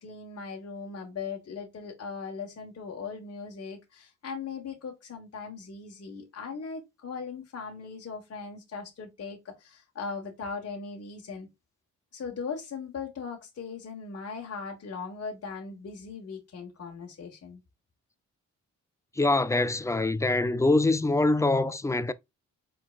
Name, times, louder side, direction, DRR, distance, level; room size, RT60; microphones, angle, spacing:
voice 1, 0.0-11.5 12.1-17.6, left 5 dB, 50° left, 1.4 m, -39 dB
voice 2, 19.2-22.1, left 2 dB, 10° left, 0.4 m, -24 dB
4.7 x 3.8 x 2.4 m
supercardioid pair, 65°, 31 cm